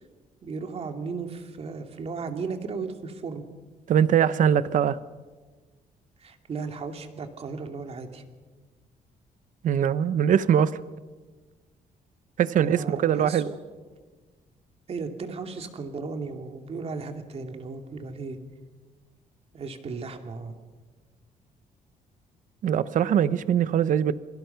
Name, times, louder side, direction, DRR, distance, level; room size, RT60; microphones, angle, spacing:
voice 1, 0.4-3.5 6.2-8.2 12.6-13.9 14.9-18.4 19.5-20.5, right 4 dB, 40° right, 5 dB, 2.5 m, -35 dB
voice 2, 3.9-5.0 9.6-10.8 12.4-13.5 22.6-24.1, right 9 dB, 60° right, 15 dB, 0.9 m, -22 dB
27.5 x 23.0 x 5.8 m, 1.3 s
cardioid pair, 145°, 15 cm